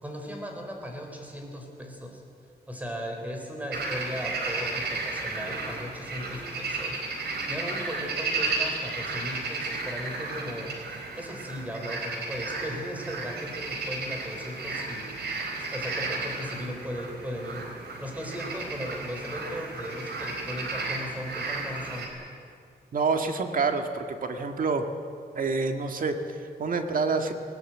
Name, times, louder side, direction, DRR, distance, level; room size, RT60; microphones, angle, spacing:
voice 1, 0.0-2.2 2.7-17.7 18.0-22.1, equal, 10° right, 2 dB, 4.1 m, -37 dB
sound 1, 3.7-22.1, right 3 dB, 90° right, 4.0 m, -33 dB
voice 2, 22.9-24.9 25.4-27.3, right 4 dB, 55° right, 5 dB, 1.8 m, -27 dB
19.5 x 19.0 x 8.9 m, 2.3 s
wide cardioid pair, 135°, 17 cm